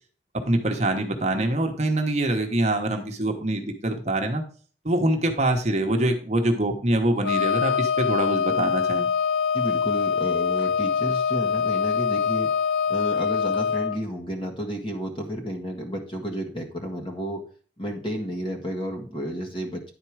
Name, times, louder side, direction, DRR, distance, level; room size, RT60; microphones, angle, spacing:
voice 1, 0.5-4.4 4.8-9.1, right 1 dB, 40° right, 4 dB, 1.0 m, -24 dB
Wind instrument woodwind instrument, 7.2-14.0, left 6 dB, 85° left, 0.5 m, -24 dB
voice 2, 9.5-12.5 12.9-17.4 17.8-19.9, equal, 30° left, 1 dB, 1.6 m, -31 dB
10.0 x 4.5 x 4.8 m, 0.42 s
head